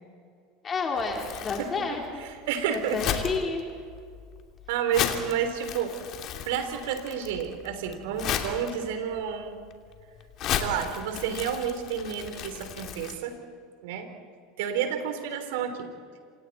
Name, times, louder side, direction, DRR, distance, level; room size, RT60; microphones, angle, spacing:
voice 1, 0.6-2.2 2.9-3.6, left 4 dB, 30° left, 0 dB, 3.7 m, -30 dB
Crumpling crinkling, 1.0-13.1, left 9 dB, 50° left, 2.8 m, -35 dB
voice 2, 2.5-3.0 4.7-5.9 6.4-9.6 10.6-13.3 13.8-14.1 14.6-15.9, right 8 dB, 70° right, 7 dB, 3.5 m, -30 dB
28.5 x 27.0 x 4.3 m, 2.2 s
hypercardioid pair, 85°, 0 cm